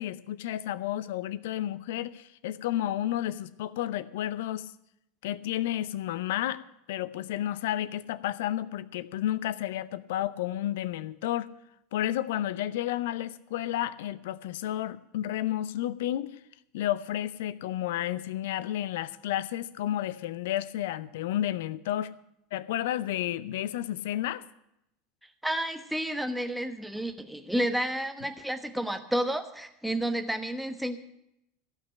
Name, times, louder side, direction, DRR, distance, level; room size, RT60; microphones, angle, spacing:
voice 1, 0.0-4.7 5.2-6.6 6.9-11.5 11.9-16.3 16.7-22.1 22.5-24.4, left 13 dB, 60° left, 17 dB, 0.6 m, -31 dB
voice 2, 25.4-31.0, right 1 dB, ahead, 7 dB, 1.3 m, -31 dB
15.5 x 5.9 x 9.9 m, 0.81 s
figure-of-eight pair, 80°, 0 cm